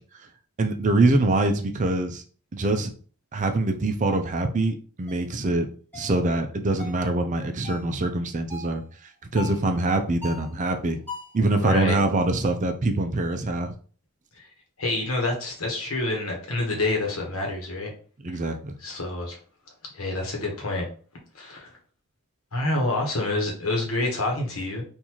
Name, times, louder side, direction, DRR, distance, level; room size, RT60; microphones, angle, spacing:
voice 1, 0.6-2.2 2.5-2.9 3.3-5.7 5.9-8.8 9.3-11.0 11.3-13.7 18.2-18.7, right 2 dB, 35° right, 6 dB, 0.4 m, -24 dB
sound 1, 5.1-5.3 5.9-6.2 6.8-7.1 7.6-7.9 8.5-8.8 9.4-9.6 10.2-10.6 11.1-11.4, left 4 dB, 10° left, 1.3 m, -39 dB
voice 2, 11.6-12.0 14.8-17.9 18.8-19.4 19.9-20.8 21.3-21.7 22.5-24.8, left 2 dB, 65° left, 0 dB, 1.2 m, -27 dB
3.9 x 2.6 x 3.0 m, 0.41 s
head